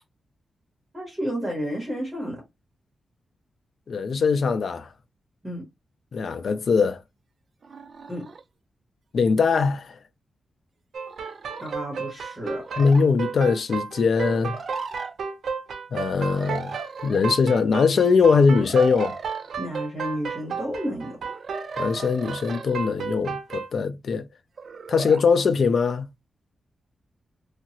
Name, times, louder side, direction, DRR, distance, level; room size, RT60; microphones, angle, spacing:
voice 1, 0.9-2.4 5.4-5.7 8.1-8.3 11.6-12.7 19.6-21.3, equal, 15° right, 1.2 m, -31 dB
voice 2, 3.9-4.9 6.1-7.0 9.1-10.0 12.8-14.6 15.9-16.8 17.0-19.2 21.8-24.3 24.9-26.1, left 5 dB, 55° left, 0.4 m, -21 dB
sound 1, 7.6-8.4 9.5-9.7 11.1-11.7 12.6-13.0 14.5-15.2 16.3-17.2 18.5-19.6 21.3-22.9 24.6-25.3, right 4 dB, 45° right, 0.4 m, -38 dB
sound 2, 10.9-23.7, right 5 dB, 70° right, 0.8 m, -33 dB
3.0 x 2.4 x 2.9 m
wide cardioid pair, 175°, 0 cm